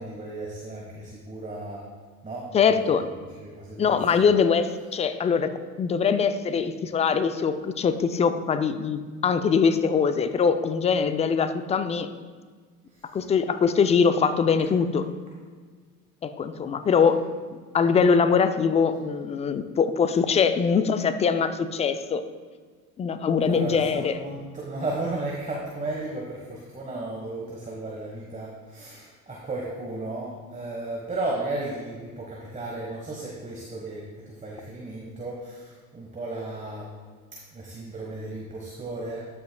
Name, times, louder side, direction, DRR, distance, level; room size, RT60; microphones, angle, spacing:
voice 1, 0.0-1.9 2.2-3.0 3.4-4.3 12.9-13.1 23.5-36.9 37.3-39.3, right 2 dB, 15° right, -3 dB, 1.3 m, -35 dB
voice 2, 2.5-3.0 3.8-5.5 5.8-12.1 13.1-15.1 16.2-17.2 17.7-22.2 23.0-24.1, left 6 dB, 15° left, 10 dB, 0.3 m, -22 dB
13.0 x 5.9 x 2.3 m, 1.5 s
hypercardioid pair, 70°, 46 cm